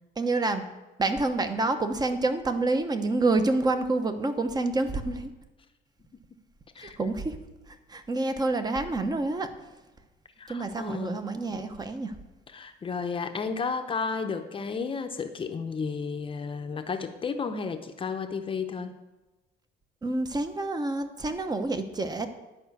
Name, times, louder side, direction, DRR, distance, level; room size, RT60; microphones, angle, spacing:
voice 1, 0.2-0.6 1.0-5.3 6.8-7.4 7.9-9.5 10.5-12.1 20.0-22.3, right 2 dB, 25° right, 8 dB, 1.0 m, -28 dB
voice 2, 10.4-11.3 12.5-18.9, left 5 dB, 30° left, 7 dB, 0.7 m, -32 dB
10.5 x 5.1 x 7.9 m, 1.1 s
cardioid pair, 110°, 17 cm